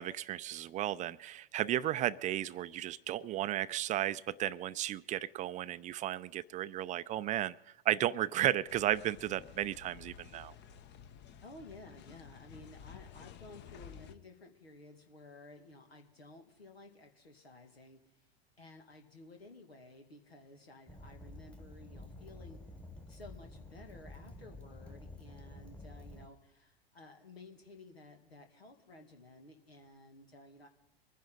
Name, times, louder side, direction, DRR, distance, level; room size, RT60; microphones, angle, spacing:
voice 1, 0.0-7.5 7.9-10.5, right 13 dB, 25° right, 16 dB, 0.4 m, -34 dB
sound 1, 8.7-14.1, left 8 dB, 35° left, 1.0 m, -53 dB
voice 2, 11.4-18.3 18.6-22.6 23.1-30.7, left 2 dB, 85° left, 4 dB, 2.2 m, -55 dB
Fire, 20.9-26.3, left 2 dB, 5° left, 1.4 m, -50 dB
24.0 x 10.5 x 3.9 m, 0.92 s
hypercardioid pair, 95°, 30 cm